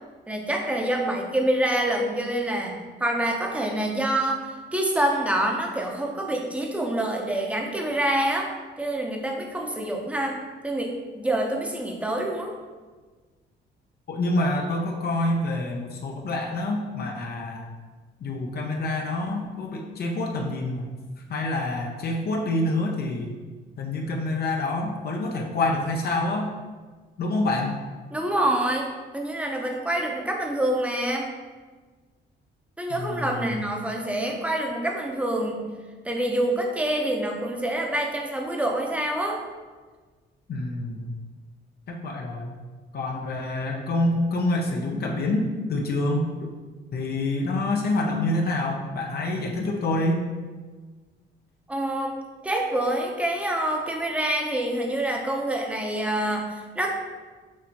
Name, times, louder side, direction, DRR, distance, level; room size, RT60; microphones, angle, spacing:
voice 1, 0.3-8.5 8.8-10.4 10.6-12.5 28.1-28.9 29.1-31.3 32.8-35.7 36.0-39.4 51.7-56.9, right 1 dB, 5° right, 1 dB, 0.7 m, -26 dB
voice 2, 14.1-17.6 18.2-20.9 21.3-23.3 23.8-26.5 27.2-27.8 32.9-33.5 40.5-41.1 41.9-42.6 42.9-46.3 46.9-50.2, left 2 dB, 55° left, 1 dB, 0.6 m, -27 dB
6.3 x 2.7 x 2.9 m, 1.4 s
cardioid pair, 90°, 20 cm